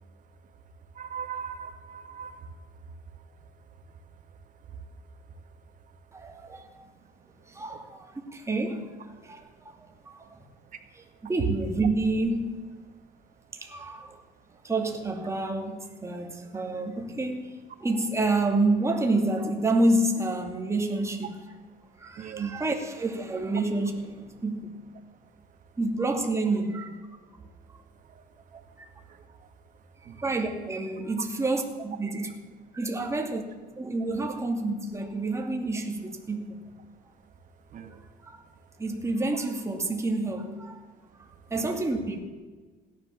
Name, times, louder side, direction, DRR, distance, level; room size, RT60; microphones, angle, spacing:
voice 1, 1.0-2.3 22.2-22.5 28.1-28.2 30.1-30.2 37.7-37.9 41.6-41.7, right 7 dB, 50° right, 1.8 m, -37 dB
voice 2, 6.1-6.8 7.5-9.7 10.0-10.4 10.9-12.7 13.5-14.2 14.6-17.5 17.8-21.4 22.0-24.7 25.8-26.9 28.5-28.9 30.2-32.3 32.7-33.4 33.8-36.6 37.8-37.9 38.2-38.4 38.8-40.8 41.5-42.2, right 2 dB, 15° right, 2.5 m, -29 dB
16.5 x 11.5 x 7.1 m
cardioid pair, 110°, 17 cm